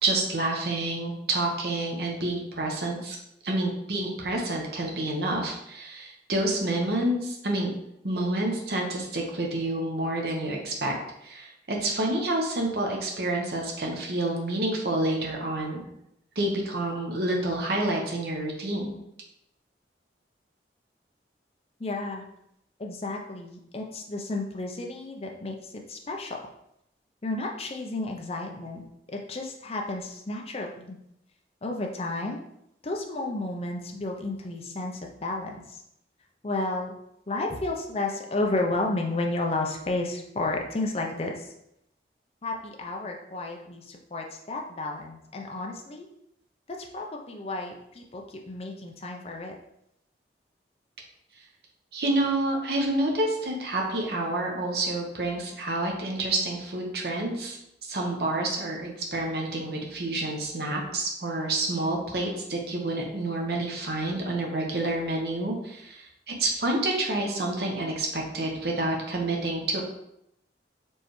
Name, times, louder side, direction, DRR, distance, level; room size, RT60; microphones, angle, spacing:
voice 1, 0.0-3.2 3.4-7.7 8.0-10.9 11.2-15.8 16.4-19.0 51.9-69.8, right 2 dB, 60° right, 0 dB, 0.9 m, -28 dB
voice 2, 21.8-22.3 22.8-26.4 27.2-28.8 29.1-31.0 31.6-32.4 32.8-35.8 36.4-37.0 37.3-41.5 42.4-46.1 46.7-49.5, left 2 dB, 35° left, 1 dB, 0.5 m, -32 dB
4.4 x 3.3 x 3.1 m, 0.79 s
head